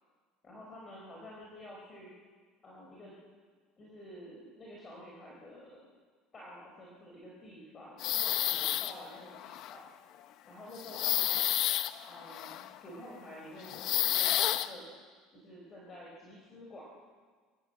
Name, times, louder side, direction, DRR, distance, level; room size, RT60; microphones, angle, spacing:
voice 1, 0.4-2.1 2.6-3.2 3.8-5.8 6.3-9.8 10.5-11.4 12.1-14.9 15.3-16.9, left 1 dB, 25° left, -4 dB, 4.6 m, -49 dB
sound 1, 8.0-9.1 9.3-9.8 10.8-12.8 13.6-14.7, left 13 dB, 50° left, 0.8 m, -30 dB
25.0 x 15.0 x 7.9 m, 1.5 s
cardioid pair, 150°, 0 cm